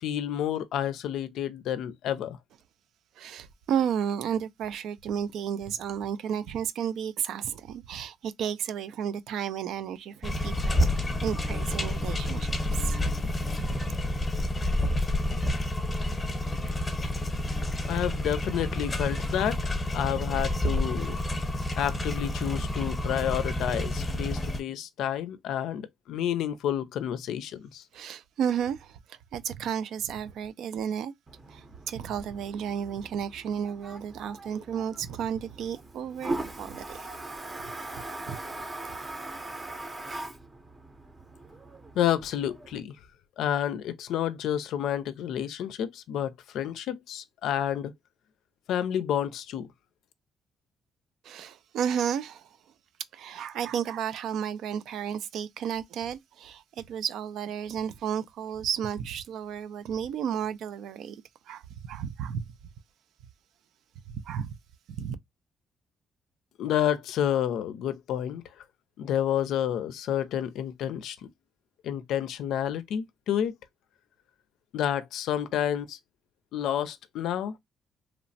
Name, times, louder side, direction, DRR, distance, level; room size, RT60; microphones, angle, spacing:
voice 1, 0.0-2.4 17.9-21.2 21.8-27.8 42.0-43.0 43.4-47.9 48.7-49.7 66.6-68.4 69.0-71.3 71.8-73.5 74.7-76.0 76.5-77.5, left 10 dB, 80° left, 0.4 m, -30 dB
voice 2, 3.2-12.6 12.8-13.1 13.7-13.8 27.9-31.1 31.5-37.0 38.3-38.4 51.2-52.6 53.1-62.5 64.1-64.5 65.0-65.2, right 8 dB, 80° right, 0.3 m, -33 dB
sound 1, 10.2-24.6, left 1 dB, 20° left, 0.8 m, -29 dB
Toilet flush, 31.3-42.8, right 2 dB, 25° right, 0.6 m, -40 dB
2.9 x 2.0 x 2.5 m
cardioid pair, 90°, 0 cm